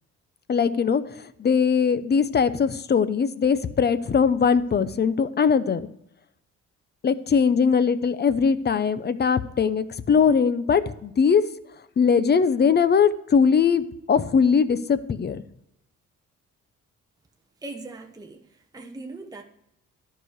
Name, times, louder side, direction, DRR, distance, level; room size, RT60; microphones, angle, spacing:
voice 1, 0.5-5.9 7.0-11.4 12.0-15.4, left 6 dB, 35° left, 0.6 m, -21 dB
voice 2, 17.6-19.4, right 2 dB, 10° right, 0.9 m, -40 dB
11.5 x 4.9 x 6.3 m
cardioid pair, 90°, 30 cm